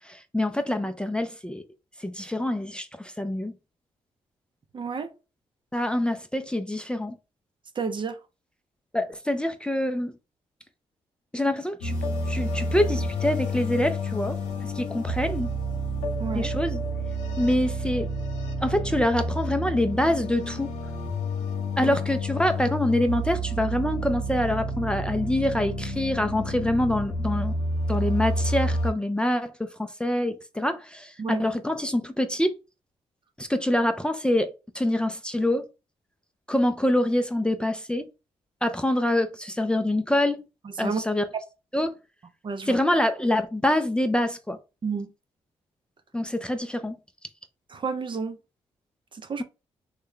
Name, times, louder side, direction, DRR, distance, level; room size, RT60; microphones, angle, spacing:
voice 1, 0.0-1.6 2.0-3.5 5.7-7.2 8.9-10.1 11.3-11.9 12.3-14.4 14.7-15.5 16.3-16.8 17.4-18.1 18.6-20.7 21.8-27.5 27.9-32.5 33.4-35.7 36.5-38.1 38.6-40.4 40.8-41.3 41.7-41.9 42.7-44.6 46.1-47.0, left 1 dB, 10° left, 0.4 m, -25 dB
voice 2, 4.7-5.1 7.8-8.2 16.2-16.5 21.8-22.0 31.2-31.4 40.8-41.0 42.4-42.8 44.8-45.1 47.7-48.4 49.1-49.4, right 5 dB, 40° right, 0.6 m, -30 dB
sound 1, 11.8-28.9, equal, 85° left, 0.8 m, -29 dB
3.2 x 2.2 x 3.7 m
supercardioid pair, 60°, 12 cm